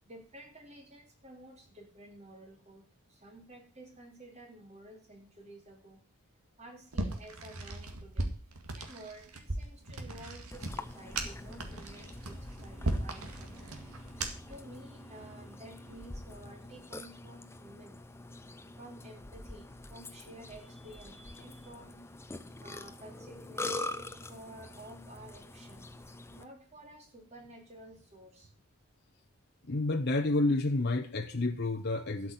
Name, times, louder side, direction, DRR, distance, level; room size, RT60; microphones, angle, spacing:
voice 1, 0.0-2.8 3.1-6.0 6.6-8.3 8.7-18.0 18.8-22.0 22.6-25.9 26.2-28.5, right 1 dB, 30° right, 3 dB, 2.9 m, -52 dB
sound 1, 6.9-14.6, right 2 dB, 80° right, 2.0 m, -37 dB
Burping eructation, 10.5-26.4, left 2 dB, 10° left, 0.7 m, -44 dB
sound 2, 11.6-16.7, right 3 dB, 60° right, 4.5 m, -58 dB
voice 2, 29.7-32.3, left 2 dB, 45° left, 6 dB, 0.8 m, -29 dB
12.5 x 6.0 x 7.9 m, 0.41 s
head